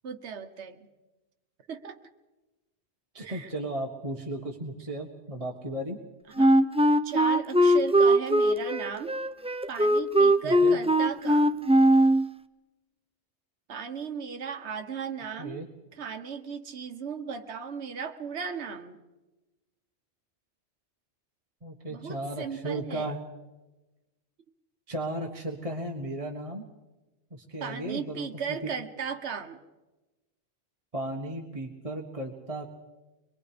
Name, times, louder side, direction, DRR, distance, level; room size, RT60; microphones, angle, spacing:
voice 1, 0.0-0.9 1.7-2.0 3.2-3.5 6.4-6.6 7.0-9.1 9.7-11.6 13.7-15.6 15.9-19.0 21.9-23.1 27.6-29.6, right 6 dB, 75° right, 6 dB, 1.3 m, -36 dB
voice 2, 3.1-6.0 10.4-10.8 15.4-15.7 21.6-23.2 24.9-26.6 27.3-28.7 30.9-32.8, right 1 dB, 30° right, 1 dB, 1.6 m, -35 dB
Wind instrument woodwind instrument, 6.4-12.3, right 1 dB, 10° right, 0.4 m, -21 dB
24.5 x 22.5 x 5.1 m, 1.1 s
omnidirectional pair, 1.1 m